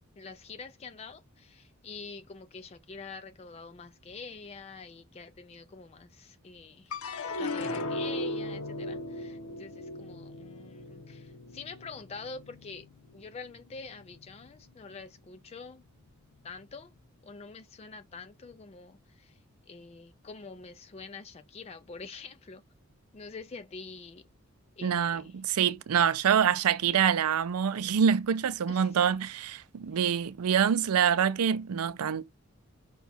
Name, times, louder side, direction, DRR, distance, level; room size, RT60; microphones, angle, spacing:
voice 1, 0.2-7.1 7.4-12.9 13.1-15.8 16.4-16.9 17.2-19.4 19.7-22.6 23.1-24.2 24.8-25.3 28.7-28.9, left 4 dB, 30° left, 0.3 m, -46 dB
sound 1, 6.9-13.3 13.8-14.5, left 2 dB, 75° left, 0.7 m, -37 dB
voice 2, 24.8-32.2, right 8 dB, 85° right, 0.4 m, -26 dB
5.7 x 2.3 x 4.0 m
head